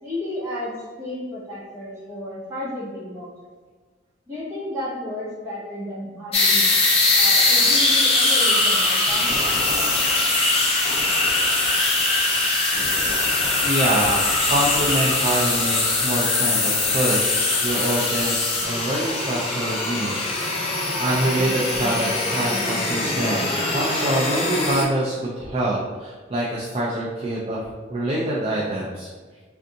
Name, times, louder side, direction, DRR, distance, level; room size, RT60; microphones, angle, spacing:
voice 1, 0.0-3.3 4.3-6.8 7.2-9.3, left 1 dB, 15° right, -10 dB, 1.4 m, -32 dB
sound 1, 6.3-24.8, left 2 dB, 30° left, 0.5 m, -21 dB
voice 2, 13.6-17.3 17.6-27.6 27.9-29.1, right 1 dB, 30° right, -5 dB, 0.4 m, -25 dB
3.4 x 2.6 x 2.6 m, 1.4 s
head